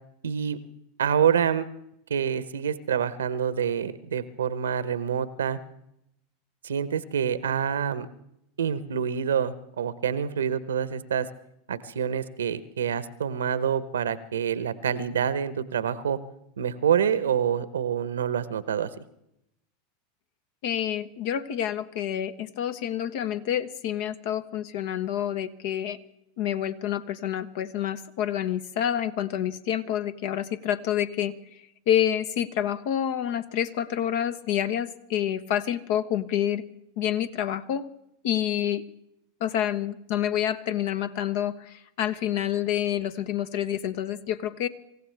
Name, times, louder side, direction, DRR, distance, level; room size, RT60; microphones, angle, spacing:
voice 1, 0.2-0.6 1.0-1.7 2.1-5.6 6.6-8.1 8.6-11.3 11.7-16.2 16.6-18.9, right 8 dB, 80° right, 15 dB, 0.9 m, -27 dB
voice 2, 20.6-26.0 26.4-31.3 31.9-36.6 37.0-37.9 38.2-38.8 39.4-44.7, left 10 dB, 60° left, 12 dB, 1.0 m, -28 dB
25.5 x 15.5 x 3.4 m, 0.80 s
hypercardioid pair, 90°, 0 cm